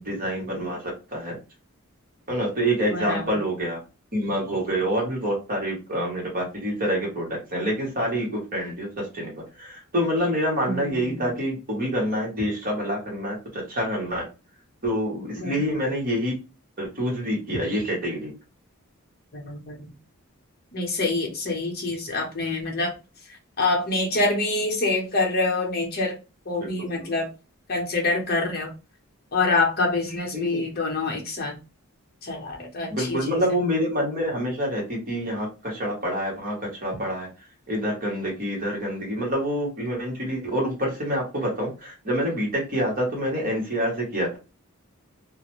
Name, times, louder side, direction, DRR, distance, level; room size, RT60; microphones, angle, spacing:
voice 1, 0.0-1.4 2.3-3.8 4.1-14.2 14.8-16.3 16.8-18.3 26.6-27.1 30.3-30.6 32.9-36.5 36.8-37.3 37.7-44.4, equal, 40° right, -2 dB, 1.1 m, -27 dB
voice 2, 2.9-3.3 10.6-11.3 15.4-15.8 19.3-19.9 20.7-22.9 23.6-26.2 26.5-27.3 27.7-28.7 29.3-31.6 32.2-33.4, left 2 dB, 45° left, 0 dB, 0.8 m, -26 dB
2.4 x 2.1 x 3.0 m, 0.30 s
head